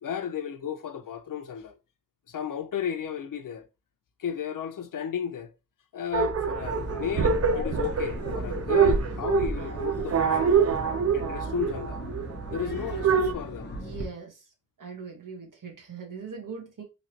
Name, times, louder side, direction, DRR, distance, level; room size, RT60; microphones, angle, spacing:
voice 1, 0.0-1.8 2.3-3.7 4.2-5.5 5.9-10.7 11.1-12.0 12.5-13.7, left 8 dB, 75° left, 0.6 m, -33 dB
sound 1, 6.1-13.3, right 6 dB, 50° right, 0.5 m, -26 dB
sound 2, 6.6-14.1, left 1 dB, 35° left, 0.7 m, -39 dB
voice 2, 13.8-14.5 14.8-16.8, right 5 dB, 70° right, 1.1 m, -40 dB
3.1 x 2.8 x 2.8 m
wide cardioid pair, 95°, 33 cm